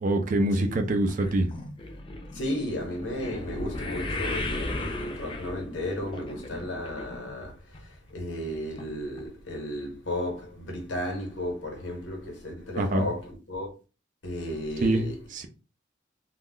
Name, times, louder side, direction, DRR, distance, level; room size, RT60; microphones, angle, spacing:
voice 1, 0.0-1.5 12.8-13.1 14.8-15.0 15.3-15.5, right 1 dB, 45° right, 0.4 m, -24 dB
sound 1, 1.1-7.5 7.7-8.2 8.8-8.9 9.2-9.3, left 2 dB, 30° left, 0.4 m, -36 dB
voice 2, 2.3-13.7 14.2-15.2, left 1 dB, 90° left, 1.0 m, -34 dB
2.3 x 2.0 x 3.6 m
head